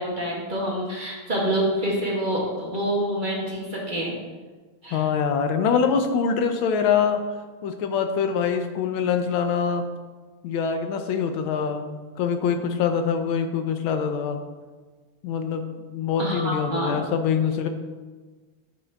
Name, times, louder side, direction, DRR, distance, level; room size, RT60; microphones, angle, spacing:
voice 1, 0.0-4.2 4.8-5.0 16.2-17.0, right 1 dB, 35° right, -4 dB, 0.8 m, -27 dB
voice 2, 4.9-7.2 7.6-9.9 10.4-14.4 15.2-17.7, left 6 dB, 75° left, 7 dB, 1.3 m, -24 dB
8.6 x 3.9 x 3.3 m, 1.3 s
omnidirectional pair, 2.4 m